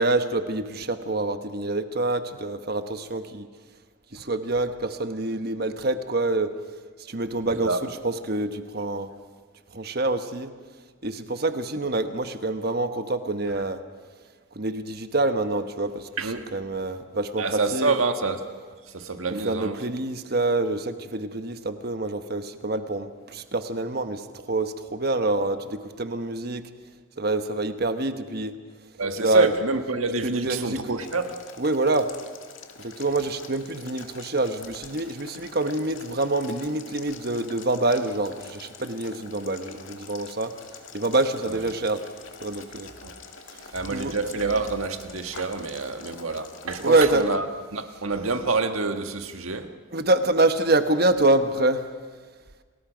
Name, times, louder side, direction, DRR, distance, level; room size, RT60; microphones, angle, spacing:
voice 1, 0.0-3.5 4.1-6.5 7.1-9.1 9.7-10.5 11.0-13.8 14.5-16.1 16.5-17.9 19.4-26.6 27.2-28.5 29.2-29.5 30.2-31.0 31.6-32.1 32.8-40.5 40.9-42.0 42.4-42.9 43.5-44.2 46.8-47.3 49.9-51.8, right 2 dB, 50° right, 1.2 m, -26 dB
voice 2, 7.5-7.8 16.2-16.4 17.4-18.4 18.9-19.8 29.0-31.4 41.5-41.6 43.0-43.1 43.7-47.4 47.7-49.7, right 3 dB, 85° right, 1.6 m, -27 dB
Boiling, 31.0-47.0, left 5 dB, 70° left, 2.1 m, -45 dB
29.0 x 20.0 x 5.2 m
head